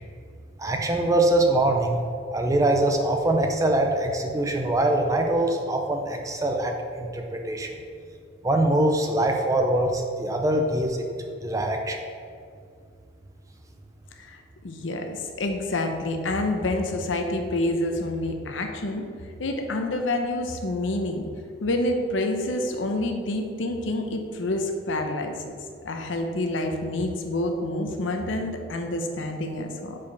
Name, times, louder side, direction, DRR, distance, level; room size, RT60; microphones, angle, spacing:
voice 1, 0.6-2.0 2.3-7.7 8.4-11.0 11.4-12.0, right 1 dB, 15° right, 3 dB, 0.5 m, -23 dB
voice 2, 14.2-19.1 19.4-21.3 21.6-25.6 25.8-30.0, left 1 dB, 80° left, 4 dB, 0.7 m, -28 dB
5.0 x 4.7 x 5.3 m, 2.3 s
head